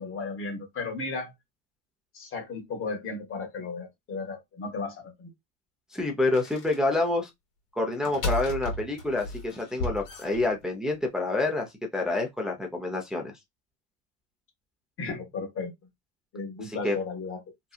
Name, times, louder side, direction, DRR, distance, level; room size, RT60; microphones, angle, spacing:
voice 1, 0.0-1.3 2.1-5.3 15.0-15.7 16.3-17.4, left 4 dB, 35° left, 1.2 m, -35 dB
voice 2, 5.9-7.3 7.8-13.3 16.6-17.0, left 2 dB, ahead, 0.6 m, -28 dB
sound 1, 6.3-6.8 7.9-10.9, left 1 dB, 60° left, 1.4 m, -34 dB
2.8 x 2.3 x 2.3 m
supercardioid pair, 100°, 39 cm